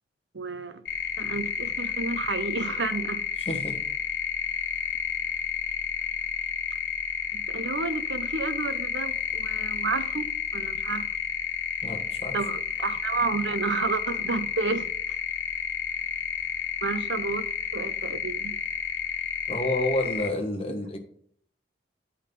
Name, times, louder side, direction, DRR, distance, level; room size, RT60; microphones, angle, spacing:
voice 1, 0.3-0.8 1.2-3.2 7.3-11.1 12.3-14.9 16.8-17.5 17.7-18.6, right 4 dB, 85° right, 0.8 m, -31 dB
sound 1, 0.9-20.3, left 7 dB, 75° left, 1.0 m, -31 dB
voice 2, 3.5-3.8 11.8-12.4 19.5-21.0, left 1 dB, 35° left, 1.3 m, -29 dB
8.5 x 5.4 x 5.3 m
head